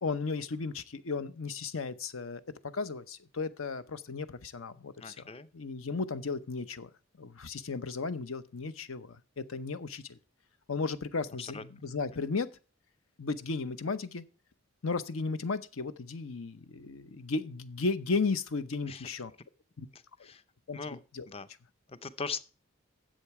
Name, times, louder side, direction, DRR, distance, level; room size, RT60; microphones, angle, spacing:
voice 1, 0.0-2.4 2.7-5.2 5.5-6.9 7.2-10.2 10.7-12.5 13.2-14.2 14.8-19.3 19.8-19.9 20.7-21.3, left 4 dB, 80° left, 0.8 m, -35 dB
voice 2, 5.0-5.5 11.4-11.6 18.9-19.1 19.9-20.4 20.7-21.0 21.3-21.5 21.9-22.4, left 5 dB, 30° left, 0.6 m, -40 dB
10.5 x 7.7 x 4.7 m
head